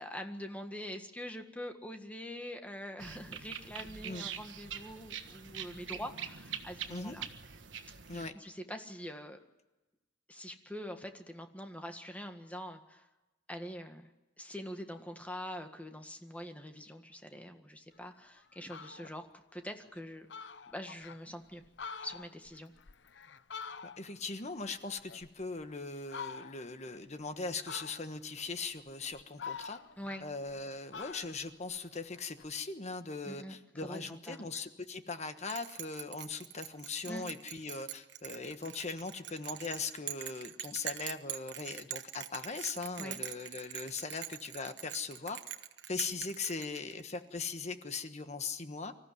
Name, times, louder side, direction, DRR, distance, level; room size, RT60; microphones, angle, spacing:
voice 1, 0.0-7.3 8.1-9.4 10.3-13.1 13.5-14.1 14.4-19.3 19.5-20.3 20.7-21.6 22.0-22.7 30.0-30.3 33.3-33.6 33.8-34.5 37.1-37.2 43.0-43.2, equal, 10° left, 5 dB, 1.8 m, -44 dB
sound 1, 3.0-8.3, right 7 dB, 85° right, 1.5 m, -44 dB
Fowl, 18.1-18.2 18.5-19.1 19.6-19.7 20.0-20.1 20.3-21.2 21.6-24.3 24.6-25.6 26.1-26.8 27.7-28.3 28.9-30.6 30.9-32.5, left 5 dB, 70° left, 0.8 m, -46 dB
voice 2, 24.0-29.8 30.2-45.4 45.9-48.9, left 4 dB, 40° left, 9 dB, 1.3 m, -40 dB
Bell, 35.5-47.2, right 12 dB, 70° right, 1.3 m, -43 dB
25.5 x 14.5 x 9.5 m, 1.1 s
head